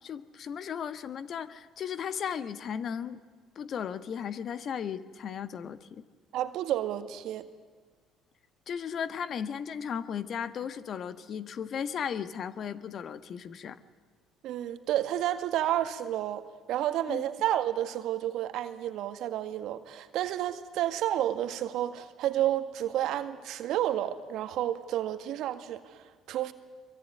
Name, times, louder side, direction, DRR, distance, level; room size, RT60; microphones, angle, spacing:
voice 1, 0.0-3.2 3.5-6.0 8.7-13.8 17.1-17.2, left 7 dB, 50° left, 13 dB, 1.4 m, -36 dB
voice 2, 6.3-7.4 14.4-26.5, right 12 dB, 65° right, 10 dB, 1.8 m, -31 dB
24.5 x 23.0 x 9.5 m, 1.5 s
hypercardioid pair, 60°, 0 cm